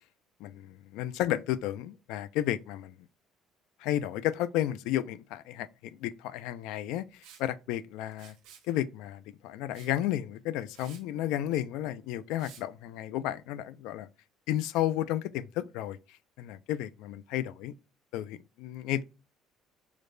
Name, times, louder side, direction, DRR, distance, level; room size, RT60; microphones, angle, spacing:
voice 1, 0.4-2.9 3.8-5.7 6.0-8.3 8.7-14.1 14.5-16.0 16.4-17.7 18.1-19.0, left 12 dB, 75° left, 0.3 m, -32 dB
Liquid, 7.2-7.5 8.1-8.7 9.7-10.0 10.4-10.5 10.7-11.0 12.4-12.6, right 8 dB, 85° right, 1.0 m, -53 dB
4.9 x 2.1 x 2.5 m
cardioid pair, 180°, 0 cm